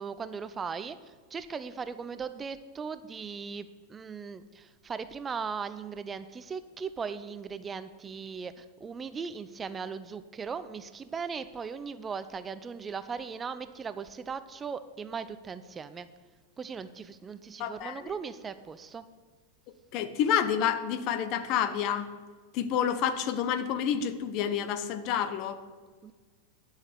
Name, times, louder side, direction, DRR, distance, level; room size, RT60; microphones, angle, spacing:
voice 1, 0.0-16.1 16.6-19.0 26.0-26.1, right 5 dB, 20° right, 13 dB, 0.5 m, -38 dB
voice 2, 17.6-18.1 19.9-22.1 22.5-25.6, left 8 dB, 45° left, 12 dB, 0.9 m, -29 dB
11.0 x 6.5 x 8.3 m, 1.5 s
figure-of-eight pair, 90°, 0 cm